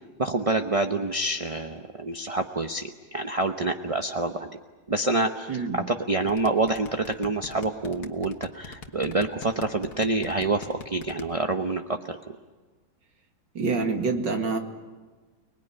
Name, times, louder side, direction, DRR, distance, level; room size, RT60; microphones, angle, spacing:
voice 1, 0.2-4.5 4.9-12.2, right 2 dB, 30° right, 5 dB, 0.6 m, -27 dB
voice 2, 5.5-5.8 13.5-14.6, right 4 dB, 80° right, 5 dB, 2.9 m, -26 dB
sound 1, 6.3-11.2, left 6 dB, 60° left, 1.9 m, -41 dB
30.0 x 20.0 x 9.9 m, 1.3 s
omnidirectional pair, 2.0 m